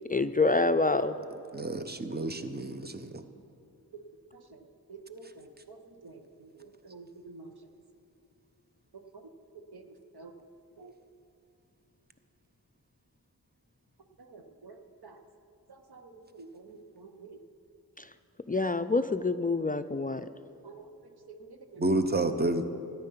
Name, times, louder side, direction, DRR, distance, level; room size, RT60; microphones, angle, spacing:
voice 1, 0.1-1.1 18.0-18.1 18.5-20.3, left 3 dB, 25° left, 10 dB, 0.3 m, -26 dB
voice 2, 1.5-3.2 21.8-22.6, right 2 dB, 25° right, 9 dB, 0.8 m, -30 dB
voice 3, 4.9-5.8 6.0-6.2 6.8-7.5 9.7-9.8 10.1-10.3 10.8-10.9 14.3-14.8 15.0-15.1 15.9-17.4 20.6-20.8 21.3-21.8, right 4 dB, 85° right, 5 dB, 1.0 m, -48 dB
13.5 x 9.6 x 5.7 m, 2.8 s
wide cardioid pair, 50°, 37 cm